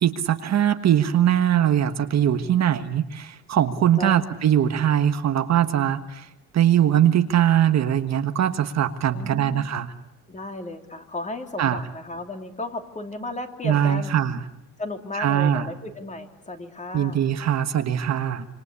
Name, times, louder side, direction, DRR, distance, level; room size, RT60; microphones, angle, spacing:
voice 1, 0.0-6.3 6.5-9.9 11.6-11.8 13.6-14.4 15.1-15.7 16.9-18.4, right 10 dB, 45° right, 8 dB, 1.5 m, -21 dB
voice 2, 4.0-4.3 9.1-9.7 10.3-14.1 14.8-17.3, left 2 dB, 20° left, 5 dB, 2.9 m, -34 dB
26.5 x 26.0 x 8.4 m, 0.87 s
cardioid pair, 130°, 38 cm